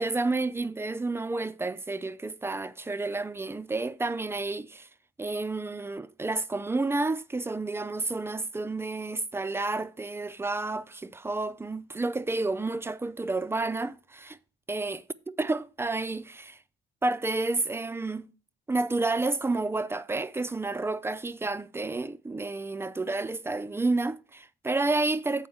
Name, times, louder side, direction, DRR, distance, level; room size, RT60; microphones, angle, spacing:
voice 1, 0.0-4.9 5.2-14.4 14.7-16.6 17.0-18.2 18.7-25.5, right 3 dB, 10° right, 0.4 m, -30 dB
7.9 x 4.3 x 7.0 m
cardioid pair, 90°, 20 cm